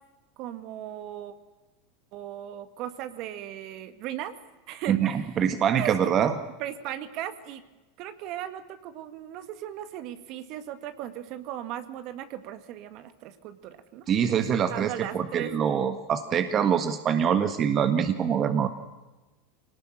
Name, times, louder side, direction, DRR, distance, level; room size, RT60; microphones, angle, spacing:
voice 1, 0.4-1.3 2.1-4.3 4.7-5.2 5.8-6.0 6.6-7.6 8.0-15.5, right 12 dB, 55° right, 10 dB, 1.9 m, -37 dB
voice 2, 4.9-6.3 14.1-18.7, right 8 dB, 40° right, 9 dB, 1.6 m, -24 dB
23.0 x 19.0 x 8.9 m, 1.1 s
hypercardioid pair, 90°, 0 cm